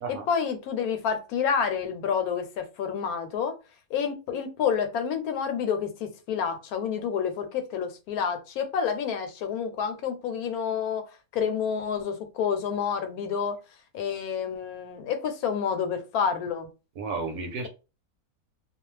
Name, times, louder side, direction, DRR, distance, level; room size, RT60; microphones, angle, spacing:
voice 1, 0.1-3.5 3.9-11.0 11.3-13.6 13.9-16.7, left 7 dB, 80° left, 1.1 m, -29 dB
voice 2, 17.0-17.7, right 4 dB, 75° right, 1.1 m, -32 dB
2.4 x 2.3 x 3.1 m
omnidirectional pair, 1.6 m